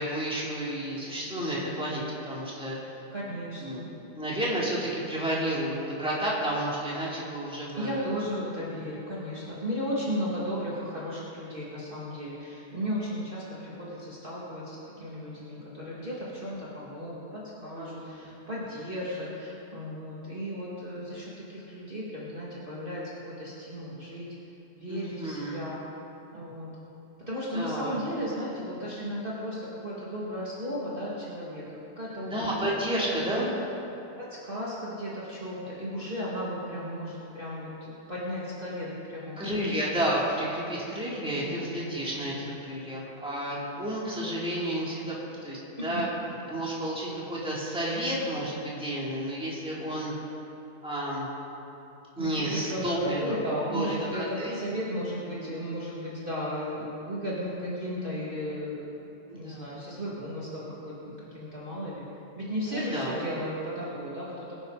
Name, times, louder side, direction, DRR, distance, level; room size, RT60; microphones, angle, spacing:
voice 1, 0.0-2.8 3.6-8.1 17.8-18.3 24.9-25.6 27.5-28.0 32.3-33.5 39.4-45.2 45.4-46.1 46.5-50.1 50.8-51.3 52.2-53.4 53.7-54.6 59.3-59.8 62.7-63.1, right 1 dB, 5° right, -6 dB, 3.0 m, -31 dB
voice 2, 3.1-3.8 7.8-23.0 23.4-24.3 24.8-25.8 26.3-26.7 27.3-31.6 32.0-32.5 33.4-33.6 34.2-39.8 41.3-42.4 45.9-46.0 52.2-58.8 59.3-62.0 62.4-64.5, equal, 30° right, -8 dB, 2.4 m, -35 dB
23.0 x 10.5 x 4.1 m, 2.9 s
omnidirectional pair, 1.8 m